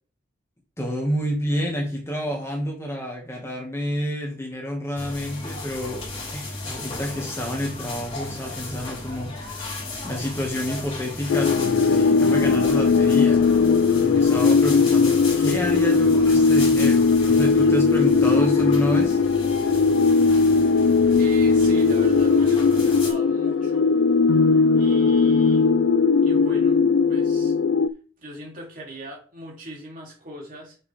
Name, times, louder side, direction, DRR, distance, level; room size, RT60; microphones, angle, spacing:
voice 1, 0.8-9.8 10.0-13.4 13.9-19.2, equal, 15° left, -1 dB, 2.1 m, -29 dB
sound 1, 5.0-23.1, left 2 dB, 35° left, 4.2 m, -35 dB
sound 2, 11.3-27.9, left 4 dB, 90° left, 0.4 m, -18 dB
voice 2, 21.2-23.9 24.7-25.7 26.2-26.8 27.1-27.5 28.2-30.8, right 1 dB, 45° right, -2 dB, 3.4 m, -39 dB
6.8 x 6.6 x 3.6 m, 0.39 s
head